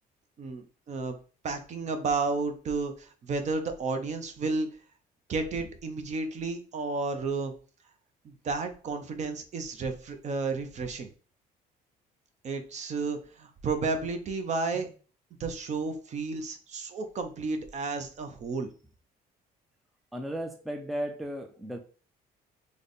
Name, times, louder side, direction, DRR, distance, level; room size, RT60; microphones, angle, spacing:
voice 1, 0.4-1.1 1.4-4.7 5.3-7.5 8.2-11.1 12.4-14.9 15.4-18.7, right 3 dB, 45° right, 0.7 m, -32 dB
voice 2, 20.1-21.8, equal, ahead, 0.4 m, -35 dB
3.3 x 2.2 x 3.9 m
cardioid pair, 110°, 17 cm